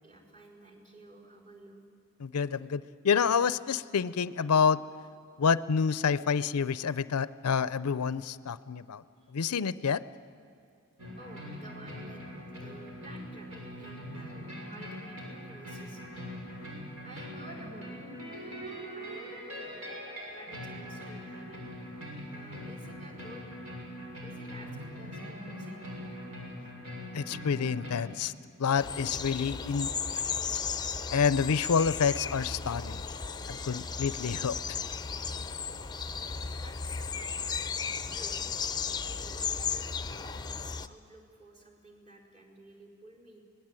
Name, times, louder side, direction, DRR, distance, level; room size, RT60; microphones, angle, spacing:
voice 1, 0.0-1.8 9.2-9.3 11.2-12.2 12.6-16.0 17.0-18.6 18.9-21.7 22.3-23.4 24.2-25.8 34.0-34.1 36.6-38.5 39.0-40.5 40.9-43.4, right 2 dB, 35° right, -2 dB, 4.6 m, -52 dB
voice 2, 2.2-4.8 5.4-9.0 9.3-10.0 27.1-28.3 28.6-29.9 31.1-33.0 33.5-34.8, left 6 dB, 80° left, 16 dB, 0.5 m, -28 dB
sound 1, 11.0-27.9, equal, 70° right, 6.4 m, -42 dB
sound 2, 28.8-40.9, left 6 dB, 20° left, 0.7 m, -35 dB
25.0 x 19.0 x 9.0 m, 2.6 s
head